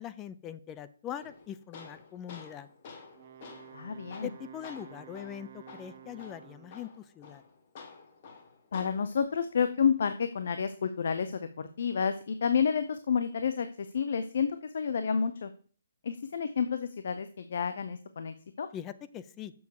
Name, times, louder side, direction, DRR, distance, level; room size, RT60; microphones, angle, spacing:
voice 1, 0.0-2.7 4.2-7.4 18.7-19.5, left 10 dB, 20° left, 13 dB, 0.4 m, -42 dB
Tools, 1.2-9.2, left 4 dB, 40° left, 1.4 m, -50 dB
Wind instrument woodwind instrument, 3.1-6.9, right 10 dB, 45° right, 1.0 m, -51 dB
voice 2, 3.7-4.3 8.7-15.5 16.0-18.7, left 6 dB, 60° left, 10 dB, 0.7 m, -30 dB
7.1 x 6.7 x 4.8 m, 0.42 s
hypercardioid pair, 155°, 0 cm